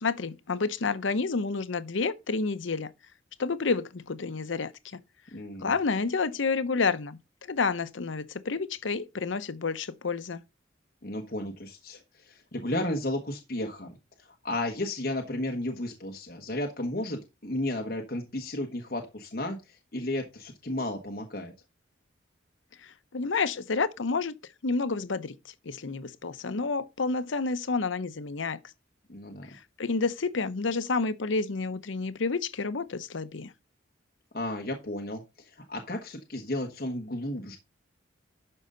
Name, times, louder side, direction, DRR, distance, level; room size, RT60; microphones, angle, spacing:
voice 1, 0.0-2.9 3.4-5.0 5.6-10.4 22.8-24.3 24.6-25.3 25.6-28.6 29.5-33.5, left 4 dB, 75° left, 0.7 m, -29 dB
voice 2, 5.3-5.7 11.0-21.5 29.1-29.5 34.3-37.6, left 1 dB, 50° left, 1.3 m, -33 dB
12.0 x 5.4 x 3.8 m
head